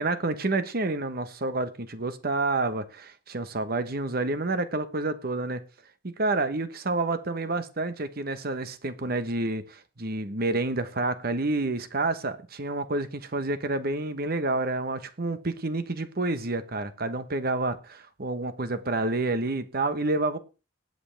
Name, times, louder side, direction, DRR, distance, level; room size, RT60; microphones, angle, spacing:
voice 1, 0.0-5.6 6.0-17.8 18.2-20.4, right 2 dB, 50° right, 1.1 m, -29 dB
19.0 x 7.9 x 3.4 m
head